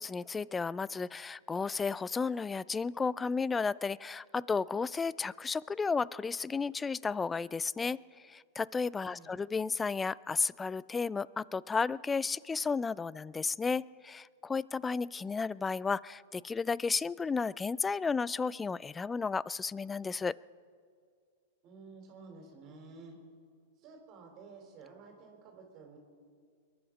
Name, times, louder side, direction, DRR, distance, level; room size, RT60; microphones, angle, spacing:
voice 1, 0.0-8.0 8.3-20.3, left 4 dB, 15° left, 22 dB, 0.3 m, -33 dB
voice 2, 9.0-9.3 21.6-23.2 23.8-26.0, right 4 dB, 40° right, 2 dB, 3.7 m, -52 dB
22.5 x 11.0 x 5.1 m, 2.2 s
hypercardioid pair, 120°, 0 cm